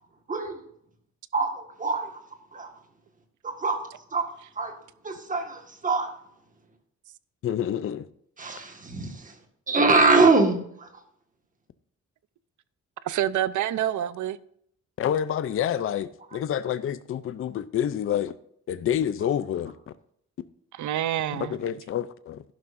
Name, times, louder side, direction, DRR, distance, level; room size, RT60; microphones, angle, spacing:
voice 1, 1.3-2.2 2.5-2.7 3.4-3.8 4.1-4.3 4.6-4.7 5.0-6.1 8.4-9.3 9.7-10.9, right 3 dB, 25° right, 1.7 m, -23 dB
voice 2, 7.4-8.1 15.0-18.4 18.7-19.7 21.3-22.4, left 9 dB, 45° left, 0.5 m, -28 dB
voice 3, 13.0-14.4 20.7-21.6, right 12 dB, 75° right, 0.6 m, -27 dB
11.5 x 11.0 x 2.6 m
wide cardioid pair, 180°, 30 cm